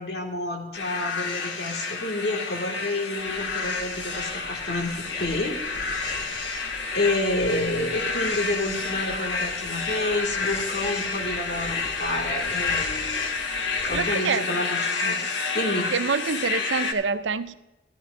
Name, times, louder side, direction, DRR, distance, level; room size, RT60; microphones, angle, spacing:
voice 1, 0.0-5.6 6.1-13.1 13.8-15.2 15.5-15.9, left 2 dB, 65° left, 1 dB, 2.1 m, -29 dB
sound 1, 0.7-16.9, left 4 dB, 90° left, 1.3 m, -29 dB
sound 2, 3.2-14.0, equal, 20° left, 1.5 m, -44 dB
voice 2, 13.9-14.4 15.9-17.5, right 5 dB, 90° right, 13 dB, 0.6 m, -26 dB
14.0 x 13.0 x 2.6 m, 1.0 s
head